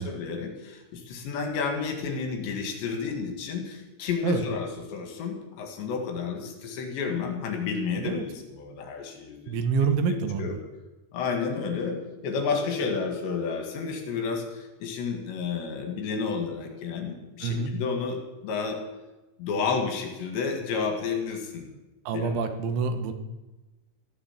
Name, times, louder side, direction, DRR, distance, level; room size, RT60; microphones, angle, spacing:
voice 1, 0.0-9.6 10.1-10.5 11.1-12.0 12.2-18.2 18.4-18.8 19.4-21.7 22.1-22.4, left 5 dB, 70° left, 4 dB, 4.0 m, -31 dB
voice 2, 9.5-10.6 17.4-17.7 22.1-23.1, right 5 dB, 80° right, 8 dB, 3.6 m, -27 dB
14.5 x 11.5 x 7.4 m, 1.1 s
omnidirectional pair, 5.5 m